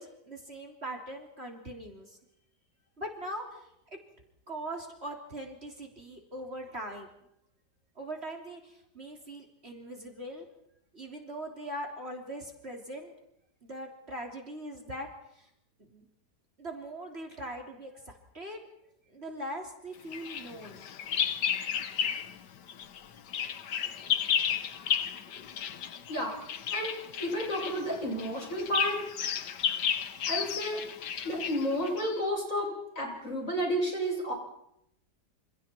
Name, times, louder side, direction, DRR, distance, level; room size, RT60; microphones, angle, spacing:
voice 1, 0.0-2.2 3.0-3.7 4.5-7.1 8.0-10.5 10.9-13.1 13.6-15.1 15.3-15.5 15.8-16.1 16.6-18.6 19.1-20.9, right 1 dB, 35° right, 1 dB, 3.7 m, -41 dB
Bird vocalization bird call bird song, 20.1-22.4 22.7-32.2, left 8 dB, 85° left, 1.7 m, -33 dB
voice 2, 27.2-29.0 30.3-30.8 31.2-34.3, equal, 50° left, -1 dB, 8.5 m, -31 dB
29.0 x 28.0 x 4.5 m, 0.79 s
omnidirectional pair, 1.8 m